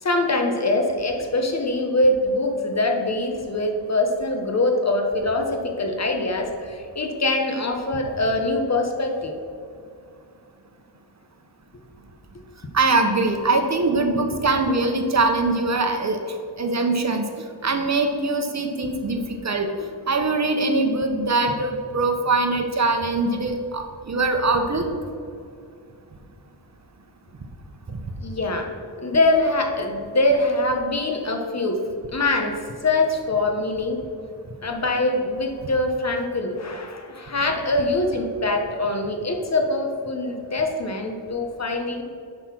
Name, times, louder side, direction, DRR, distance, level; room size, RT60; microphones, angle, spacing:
voice 1, 0.0-9.3 28.2-28.7 29.0-31.8 32.1-34.0 34.6-42.0, left 2 dB, 40° left, 3 dB, 1.1 m, -23 dB
voice 2, 12.7-16.2 16.6-17.2 17.6-19.7 20.1-24.8, right 3 dB, 40° right, 4 dB, 0.9 m, -22 dB
11.0 x 3.9 x 5.9 m, 2.4 s
wide cardioid pair, 110°, 41 cm